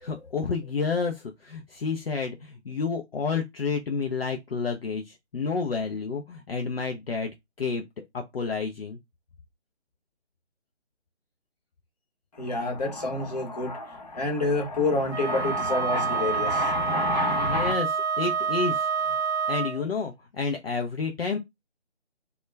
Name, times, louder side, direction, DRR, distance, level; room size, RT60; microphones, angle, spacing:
voice 1, 0.0-7.8 8.1-9.0 17.4-17.9 18.2-19.2 19.5-21.4, left 4 dB, 60° left, 0.4 m, -30 dB
voice 2, 12.3-17.7, left 2 dB, 35° left, 0.8 m, -28 dB
Wind instrument woodwind instrument, 15.1-19.8, right 6 dB, 75° right, 0.6 m, -27 dB
2.2 x 2.1 x 3.1 m
figure-of-eight pair, 155°, 34 cm